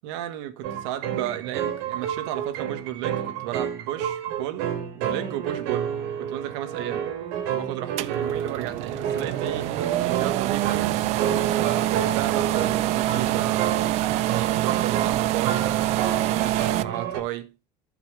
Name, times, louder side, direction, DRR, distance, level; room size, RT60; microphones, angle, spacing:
voice 1, 0.0-7.1 7.5-9.7 10.0-11.0 11.6-15.7 16.2-17.5, right 13 dB, 85° right, 1.5 m, -33 dB
sound 1, 0.6-17.2, right 9 dB, 70° right, 3.0 m, -30 dB
sound 2, 8.0-16.8, right 15 dB, 50° right, 0.6 m, -25 dB
15.0 x 5.9 x 3.2 m
cardioid pair, 170°, 14 cm